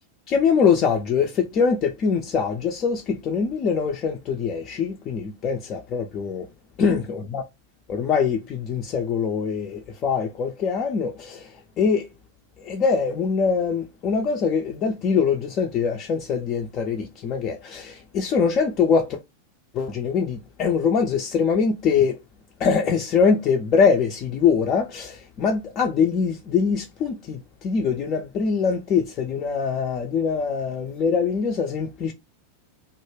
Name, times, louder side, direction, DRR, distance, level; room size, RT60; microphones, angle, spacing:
voice 1, 0.3-6.5 6.8-7.4 7.9-12.1 12.6-19.2 19.7-22.2 22.6-32.1, left 6 dB, 35° left, 0.4 m, -23 dB
2.2 x 2.1 x 3.1 m
figure-of-eight pair, 90°, 0 cm